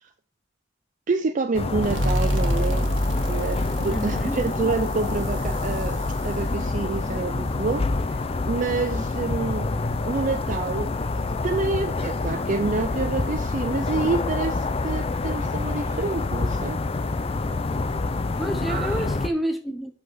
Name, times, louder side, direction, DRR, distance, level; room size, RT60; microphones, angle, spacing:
voice 1, 1.1-2.9 3.3-9.7 10.0-16.8 18.7-19.0, right 3 dB, 45° right, 0.5 m, -28 dB
sound 1, 1.5-19.3, left 3 dB, 30° left, 0.5 m, -27 dB
sound 2, 1.8-9.1, equal, 85° right, 1.4 m, -29 dB
voice 2, 3.9-4.4 18.4-19.9, right 1 dB, ahead, 0.7 m, -29 dB
5.8 x 5.6 x 6.1 m
head